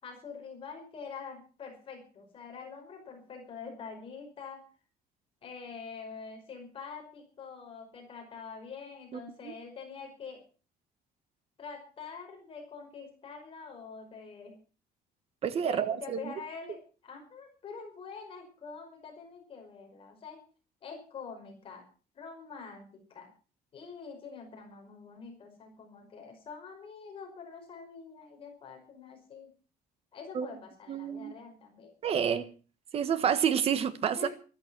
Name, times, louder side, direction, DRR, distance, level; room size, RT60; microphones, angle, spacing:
voice 1, 0.0-4.6 5.4-10.4 11.6-14.6 15.6-16.8 17.0-20.4 20.8-21.8 22.2-23.3 23.7-29.5 30.1-31.9 34.2-34.3, left 5 dB, 35° left, 5.3 m, -45 dB
voice 2, 9.1-9.5 15.4-16.3 30.3-30.5 30.9-31.4 32.0-32.5 32.9-34.3, right 8 dB, 35° right, 1.4 m, -29 dB
14.0 x 13.5 x 6.2 m
cardioid pair, 170°, 16 cm